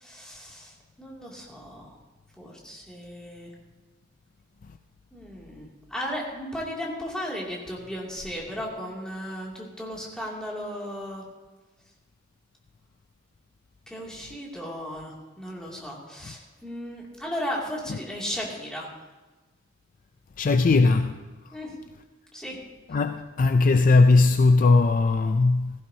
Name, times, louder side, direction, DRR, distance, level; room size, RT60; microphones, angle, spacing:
voice 1, 0.0-0.7 1.0-1.9 2.4-3.5 5.1-11.2 13.9-18.9 21.5-21.7 22.3-22.6, equal, 5° left, 2.5 m, -35 dB
voice 2, 20.4-21.2 22.9-25.7, left 3 dB, 40° left, 0.4 m, -19 dB
16.5 x 14.5 x 2.8 m
head